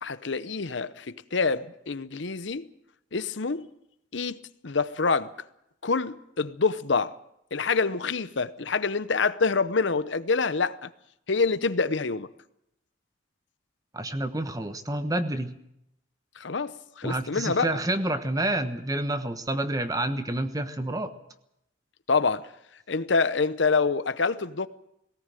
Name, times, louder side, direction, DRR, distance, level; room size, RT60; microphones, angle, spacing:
voice 1, 0.0-2.7 3.1-3.7 4.1-4.4 4.6-5.3 5.8-7.1 7.5-10.9 11.3-12.3 16.4-17.8 22.1-22.5 22.9-24.7, left 4 dB, 65° left, 0.8 m, -26 dB
voice 2, 13.9-15.6 17.0-21.1, right 1 dB, 20° right, 1.2 m, -29 dB
18.5 x 17.5 x 9.0 m
head